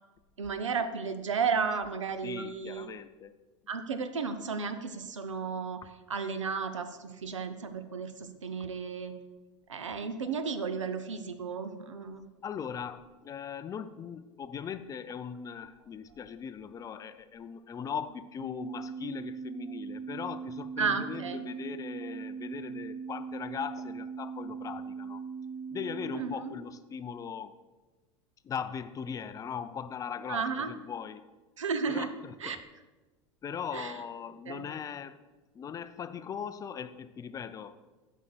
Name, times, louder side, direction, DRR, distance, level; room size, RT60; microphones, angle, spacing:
voice 1, 0.4-2.9 3.7-5.8 6.1-9.1 9.7-12.3 20.8-21.4 26.1-26.6 30.3-30.7 31.6-32.1 32.4-32.6 33.7-33.9 34.5-34.7, right 5 dB, 80° right, 9 dB, 0.6 m, -33 dB
voice 2, 2.2-3.3 8.6-8.7 12.4-25.2 25.7-27.5 28.4-31.3 31.9-32.6 33.4-35.2 35.5-37.9, left 7 dB, 20° left, 11 dB, 0.4 m, -39 dB
sound 1, 18.4-26.3, right 5 dB, 80° left, 0.9 m, -40 dB
12.0 x 5.5 x 2.3 m, 1.2 s
figure-of-eight pair, 80°, 16 cm